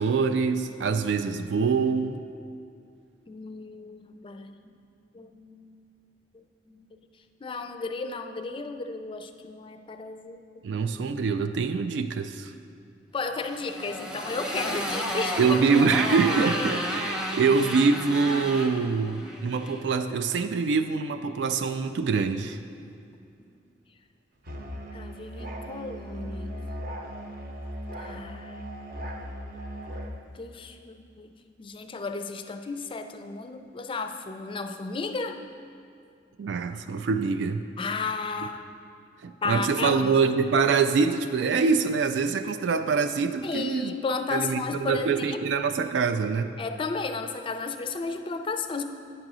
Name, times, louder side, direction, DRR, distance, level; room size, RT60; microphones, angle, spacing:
voice 1, 0.0-2.2 10.6-12.5 15.4-22.6 36.4-37.7 39.2-43.9 44.3-46.5, right 5 dB, 90° right, 9 dB, 0.3 m, -25 dB
voice 2, 3.3-4.7 5.1-5.8 6.3-6.9 7.4-10.4 13.1-15.4 24.9-26.5 28.0-28.5 30.3-31.3 31.6-35.4 37.8-38.7 39.4-40.0 43.4-45.6 46.6-48.8, left 4 dB, 30° left, 7 dB, 0.4 m, -33 dB
Motorcycle, 13.4-19.8, equal, 5° right, 0.7 m, -32 dB
Musical instrument, 24.4-30.2, equal, 55° right, 0.8 m, -38 dB
9.3 x 3.8 x 6.1 m, 2.5 s
head